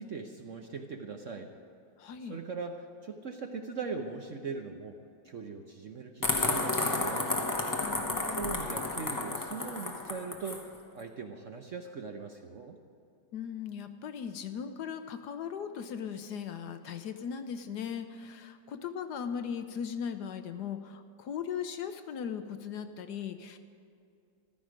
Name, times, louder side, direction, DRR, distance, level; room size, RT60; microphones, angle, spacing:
voice 1, 0.0-1.5 2.2-5.0 5.2-7.3 8.3-10.6 10.9-12.8, right 4 dB, 60° right, 4 dB, 0.9 m, -40 dB
voice 2, 2.0-2.4 7.8-8.7 13.3-23.6, left 7 dB, 70° left, 9 dB, 1.2 m, -38 dB
sound 1, 6.2-10.6, left 2 dB, 25° left, 0.4 m, -31 dB
14.0 x 13.5 x 5.1 m, 2.5 s
omnidirectional pair, 2.0 m